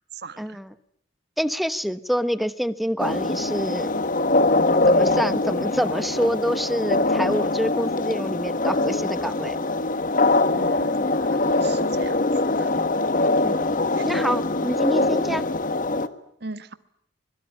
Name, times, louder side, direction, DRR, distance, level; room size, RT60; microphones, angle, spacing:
voice 1, 0.4-0.7 1.4-3.9 4.9-9.6 13.4-13.7 14.0-15.5, equal, ahead, 13 dB, 1.0 m, -26 dB
sound 1, 3.0-16.1, left 2 dB, 45° left, 1.4 m, -23 dB
voice 2, 10.5-12.8 14.0-14.1 16.4-16.7, right 3 dB, 60° right, 12 dB, 1.6 m, -39 dB
25.0 x 22.5 x 10.0 m, 0.71 s
head